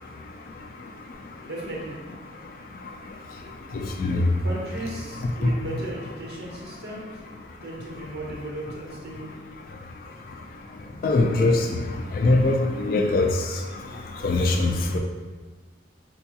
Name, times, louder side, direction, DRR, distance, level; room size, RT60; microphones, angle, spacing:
voice 1, 1.4-2.0 4.4-7.0 7.6-9.3 13.7-14.0, right 1 dB, 60° right, -5 dB, 0.9 m, -36 dB
voice 2, 11.0-11.6 12.2-13.3 14.2-15.0, left 2 dB, 50° left, 3 dB, 0.3 m, -21 dB
4.4 x 2.3 x 2.8 m, 1.4 s
head